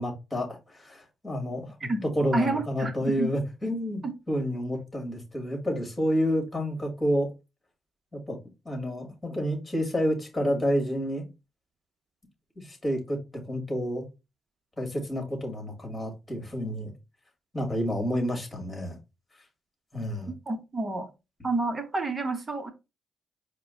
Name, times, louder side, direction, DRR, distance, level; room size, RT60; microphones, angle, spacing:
voice 1, 0.0-7.3 8.1-8.4 8.7-11.3 12.6-13.2 13.4-14.1 14.8-16.9 17.5-19.0 19.9-20.3, equal, 20° left, 2.1 m, -29 dB
voice 2, 2.3-3.3 4.0-4.1 20.5-21.1 21.4-22.7, right 2 dB, 30° right, 1.0 m, -29 dB
4.7 x 2.2 x 3.8 m
cardioid pair, 90°, 0 cm